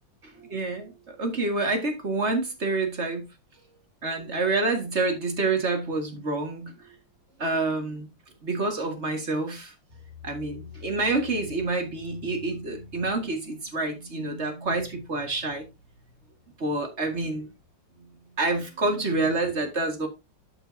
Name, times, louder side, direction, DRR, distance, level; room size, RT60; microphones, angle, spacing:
voice 1, 0.4-3.3 4.0-6.7 7.4-8.1 8.4-9.7 10.2-15.7 16.6-17.5 18.4-20.1, right 3 dB, 35° right, 1.9 m, -28 dB
12.5 x 5.4 x 2.7 m
omnidirectional pair, 2.3 m